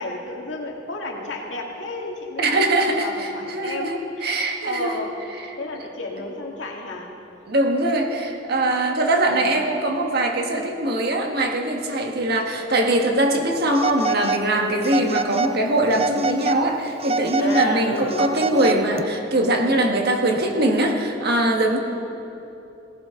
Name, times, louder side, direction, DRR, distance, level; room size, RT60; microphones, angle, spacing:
voice 1, 0.0-5.2 5.6-7.1 9.3-9.6 17.4-18.8, left 2 dB, 90° left, 0 dB, 2.0 m, -32 dB
voice 2, 2.4-3.3 3.5-5.0 5.4-5.5 7.5-21.8, right 1 dB, 60° right, 2 dB, 1.6 m, -22 dB
Telephone, 13.7-14.5 14.8-15.5 15.9-16.6 17.0-19.0, right 4 dB, 35° right, 0.5 m, -26 dB
18.5 x 15.5 x 3.8 m, 3.0 s
head